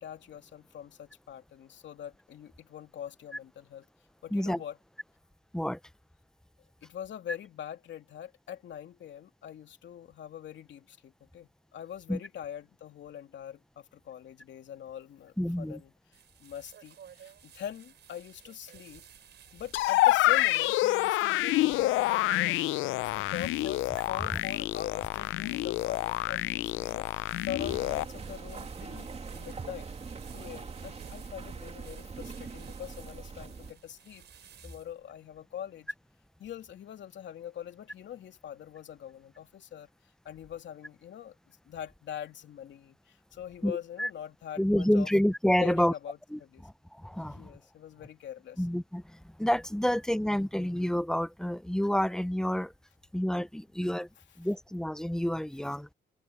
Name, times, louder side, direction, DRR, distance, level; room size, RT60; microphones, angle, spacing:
voice 1, 0.0-3.8 4.2-4.8 6.8-19.0 19.5-29.9 30.3-35.9 36.4-39.9 40.2-45.1 45.6-46.7 47.2-48.7, left 10 dB, 65° left, 2.9 m, -43 dB
voice 2, 4.3-4.6 5.5-5.8 12.1-12.2 15.4-15.8 43.6-44.1 44.6-45.9 46.3-47.5 48.6-49.0 49.4-52.7 53.1-54.1 54.4-55.9, equal, 5° left, 0.7 m, -28 dB
sound 1, 16.1-35.0, right 9 dB, 60° right, 4.9 m, -56 dB
sound 2, 19.7-28.0, left 17 dB, 90° left, 0.5 m, -27 dB
sound 3, 27.6-33.7, right 4 dB, 30° right, 2.9 m, -42 dB
cardioid pair, 90°, 20 cm